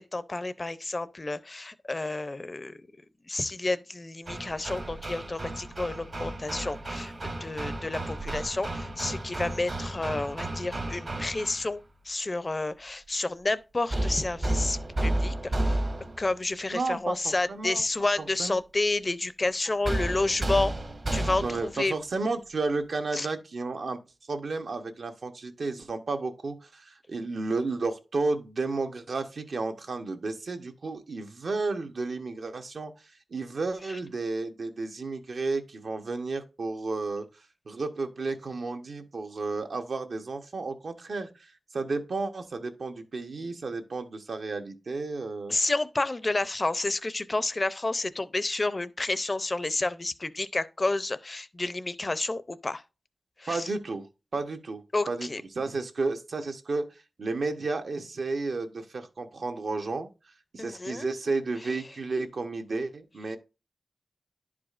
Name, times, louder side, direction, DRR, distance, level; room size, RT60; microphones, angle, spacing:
voice 1, 0.0-2.7 3.3-15.8 16.2-20.7 21.1-21.9 23.1-23.3 45.5-52.8 53.4-53.7 54.9-55.4 60.6-61.1, left 2 dB, 35° left, 0.5 m, -30 dB
Hammer, 4.3-11.7 13.9-16.3 19.8-21.8, right 1 dB, 50° right, 1.1 m, -32 dB
voice 2, 16.7-17.8 18.2-18.5 20.0-20.1 21.4-24.0 24.3-45.6 53.5-54.1 54.3-54.8 55.1-60.1 60.5-63.4, right 3 dB, 75° right, 0.9 m, -32 dB
10.5 x 4.9 x 2.4 m
wide cardioid pair, 100°, 0 cm